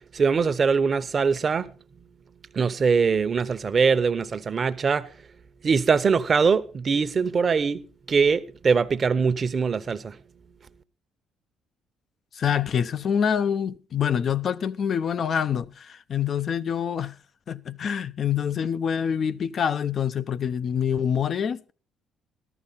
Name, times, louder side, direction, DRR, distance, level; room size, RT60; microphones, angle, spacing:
voice 1, 0.1-1.7 2.5-5.1 5.6-10.1, right 5 dB, 45° right, 1.0 m, -22 dB
voice 2, 12.3-17.1 17.5-21.7, left 8 dB, 55° left, 0.6 m, -26 dB
14.0 x 12.0 x 4.1 m
supercardioid pair, 70°, 0 cm